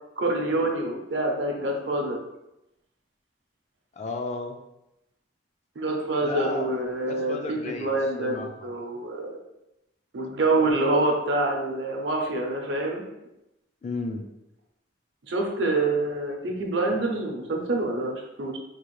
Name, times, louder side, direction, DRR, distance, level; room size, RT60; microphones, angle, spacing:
voice 1, 0.2-2.2 5.8-9.4 10.1-13.0 15.3-18.6, right 2 dB, 65° right, 1 dB, 0.7 m, -26 dB
voice 2, 3.9-4.6 6.2-6.8 7.1-8.7 13.8-14.3, left 2 dB, 35° left, 4 dB, 0.3 m, -33 dB
3.7 x 2.4 x 3.1 m, 0.90 s
head